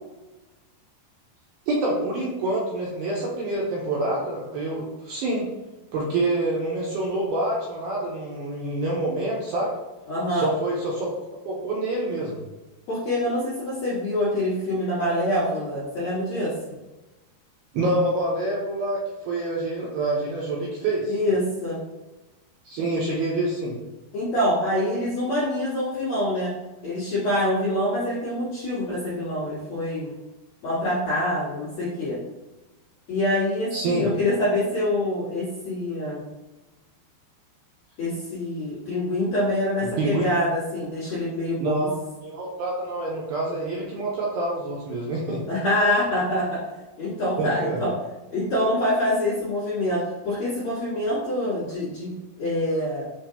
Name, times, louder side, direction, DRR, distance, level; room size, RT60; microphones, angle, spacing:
voice 1, 1.7-5.5 5.9-9.7 10.3-11.1 11.5-12.4 17.7-21.2 22.7-23.8 33.7-34.1 39.8-40.2 41.6-45.4 47.4-47.8, right 2 dB, 80° right, -4 dB, 2.3 m, -27 dB
voice 2, 10.1-10.5 12.9-16.5 21.1-21.8 24.1-26.5 26.8-30.1 30.6-32.2 33.1-36.2 38.0-41.9 45.5-46.6 47.0-47.9 48.3-53.0, left 1 dB, 55° left, -11 dB, 2.0 m, -25 dB
7.2 x 2.5 x 2.7 m, 1.1 s
omnidirectional pair, 4.9 m